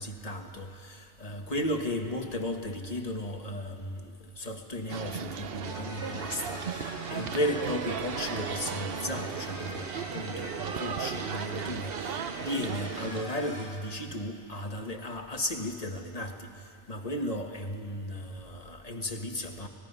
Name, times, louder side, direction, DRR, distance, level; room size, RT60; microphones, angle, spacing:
voice 1, 0.0-16.5 16.9-19.7, left 1 dB, 35° left, 4 dB, 1.4 m, -35 dB
sound 1, 4.9-13.2, right 7 dB, 60° right, 0.9 m, -36 dB
sound 2, 5.6-13.6, equal, 5° right, 5.0 m, -44 dB
24.5 x 19.5 x 5.5 m, 2.3 s
omnidirectional pair, 1.1 m